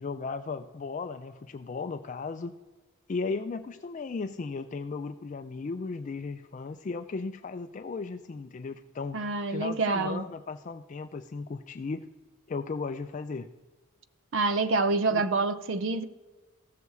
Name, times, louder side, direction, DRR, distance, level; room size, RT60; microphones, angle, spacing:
voice 1, 0.0-2.5 3.1-9.2 9.5-12.1 12.5-13.5 15.1-15.2, left 4 dB, 35° left, 0.3 m, -36 dB
voice 2, 9.1-10.3 14.3-16.0, right 3 dB, 60° right, 0.6 m, -27 dB
15.0 x 6.8 x 4.7 m
head